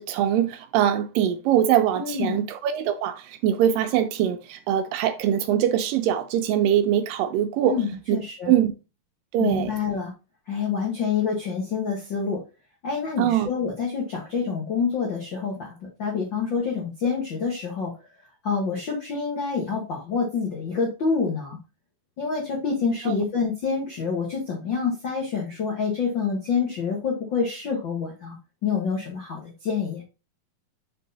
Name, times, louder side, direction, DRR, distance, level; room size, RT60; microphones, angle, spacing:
voice 1, 0.0-7.8 8.1-8.2 8.5-8.7 9.3-9.7 13.2-13.5 23.1-23.2, right 10 dB, 80° right, 2.1 m, -22 dB
voice 2, 1.9-2.4 7.6-8.6 9.4-10.1 10.5-12.4 12.8-17.9 18.4-21.6 22.2-28.4 28.6-30.0, left 5 dB, 70° left, 1.1 m, -27 dB
5.4 x 4.6 x 4.0 m
omnidirectional pair, 4.2 m